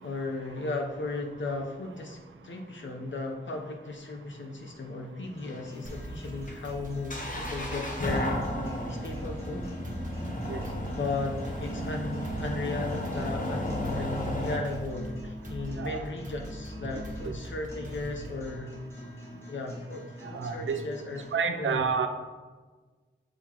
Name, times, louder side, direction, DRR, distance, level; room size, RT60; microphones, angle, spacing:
voice 1, 0.0-8.4 8.9-9.7 10.9-18.7 19.5-21.8, left 3 dB, 75° left, 2 dB, 0.8 m, -36 dB
sound 1, 5.2-21.2, left 1 dB, 15° left, 1.7 m, -46 dB
sound 2, 5.4-14.6, equal, 40° left, 1.2 m, -34 dB
sound 3, 5.8-18.5, right 1 dB, 40° right, 1.3 m, -42 dB
voice 2, 20.3-20.8 21.3-22.1, right 6 dB, 85° right, 7 dB, 0.5 m, -29 dB
7.6 x 4.1 x 3.0 m, 1.3 s
cardioid pair, 55°, 20 cm